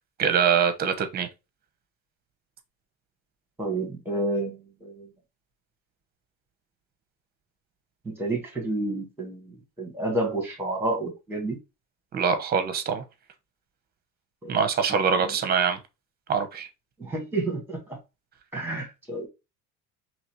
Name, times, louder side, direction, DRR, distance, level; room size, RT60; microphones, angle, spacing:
voice 1, 0.2-1.3 12.1-13.0 14.5-15.8 16.3-16.7, right 6 dB, 30° right, 0.7 m, -24 dB
voice 2, 3.6-5.1 8.0-11.6 14.4-14.6 15.2-15.3 17.0-17.8 18.5-19.3, right 2 dB, 5° right, 1.5 m, -30 dB
4.0 x 3.1 x 3.0 m
cardioid pair, 155°, 32 cm